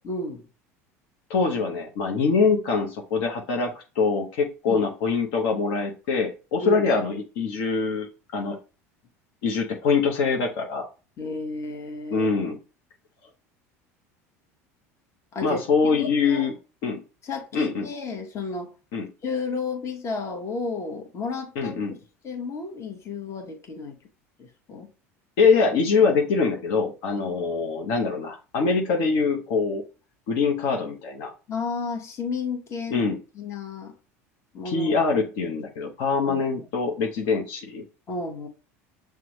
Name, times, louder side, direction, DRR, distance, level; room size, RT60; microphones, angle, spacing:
voice 1, 0.0-0.4 4.7-4.9 6.6-6.8 11.2-12.3 15.3-16.5 17.2-18.7 19.2-21.8 22.2-24.0 24.4-24.9 31.5-33.1 33.3-33.9 34.5-34.9 38.1-38.5, left 4 dB, 35° left, 1.2 m, -32 dB
voice 2, 1.3-8.1 8.3-8.6 9.4-10.9 12.1-12.6 15.4-16.5 16.8-17.0 17.5-17.9 18.9-19.1 21.6-21.9 25.4-29.8 30.3-31.3 32.9-33.2 34.6-37.8, left 4 dB, 65° left, 0.9 m, -24 dB
6.0 x 2.3 x 3.0 m
hypercardioid pair, 80°, 8 cm